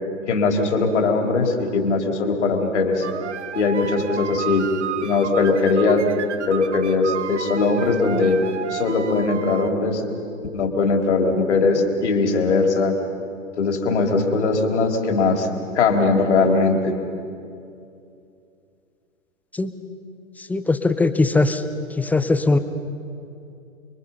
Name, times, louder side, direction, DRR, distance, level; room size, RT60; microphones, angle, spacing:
voice 1, 0.3-3.1 3.5-4.7 5.0-6.1 6.5-8.4 8.7-10.0 10.5-12.9 13.6-15.5 15.8-17.0, left 3 dB, 60° left, 3 dB, 3.4 m, -20 dB
sound 1, 3.0-9.7, right 9 dB, 60° right, 1.2 m, -32 dB
voice 2, 20.4-21.6 22.0-22.6, left 3 dB, 5° left, 10 dB, 0.6 m, -20 dB
29.0 x 23.0 x 5.7 m, 2.5 s
figure-of-eight pair, 110°, 40 cm